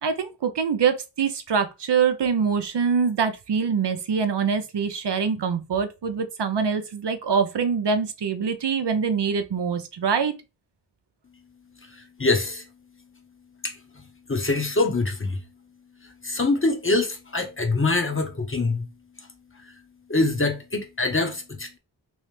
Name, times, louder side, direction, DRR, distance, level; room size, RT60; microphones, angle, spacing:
voice 1, 0.0-10.3, right 6 dB, 65° right, 0.7 m, -24 dB
voice 2, 11.9-12.7 13.6-15.4 16.0-18.9 20.1-21.8, left 3 dB, 25° left, 1.1 m, -25 dB
3.1 x 3.1 x 3.3 m
cardioid pair, 45°, 45 cm